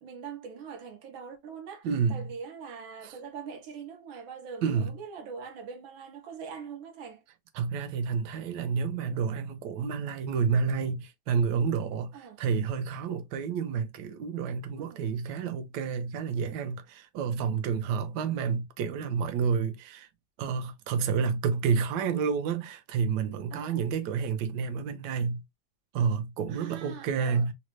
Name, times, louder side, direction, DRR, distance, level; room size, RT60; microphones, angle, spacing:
voice 1, 0.0-7.2 12.1-12.4 14.7-15.0 17.9-18.0 23.5-23.8 26.5-27.4, right 6 dB, 85° right, 1.6 m, -43 dB
voice 2, 1.8-2.3 3.0-3.1 4.6-5.0 7.5-20.1 20.4-25.4 25.9-27.5, right 6 dB, 70° right, 1.1 m, -29 dB
3.9 x 2.1 x 3.0 m
omnidirectional pair, 2.1 m